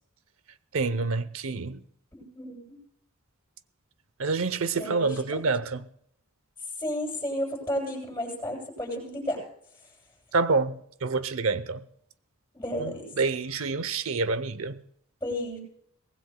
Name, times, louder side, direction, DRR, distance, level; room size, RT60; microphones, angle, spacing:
voice 1, 0.7-1.8 4.2-5.9 10.3-11.8 12.8-14.8, right 4 dB, 65° right, 0.7 m, -27 dB
voice 2, 2.2-2.8 4.7-5.2 6.8-9.4 12.5-13.1 15.2-15.6, equal, 15° left, 7.9 m, -32 dB
24.0 x 19.5 x 2.3 m
head